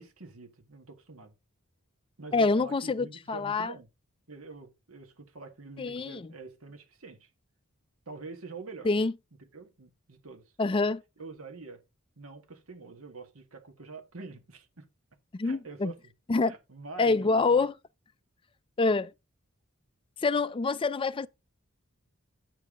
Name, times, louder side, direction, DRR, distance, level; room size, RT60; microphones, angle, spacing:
voice 1, 0.0-1.3 2.2-3.9 4.3-7.3 8.1-8.9 9.5-10.4 11.2-11.8 12.2-14.9 15.4-16.0 16.4-17.7, right 3 dB, 75° right, 1.6 m, -46 dB
voice 2, 2.3-3.7 5.8-6.3 8.8-9.1 10.6-11.0 15.3-15.9 16.3-16.5 17.0-17.7 18.8-19.1 20.2-21.3, left 3 dB, 25° left, 0.4 m, -26 dB
8.3 x 7.0 x 3.6 m
head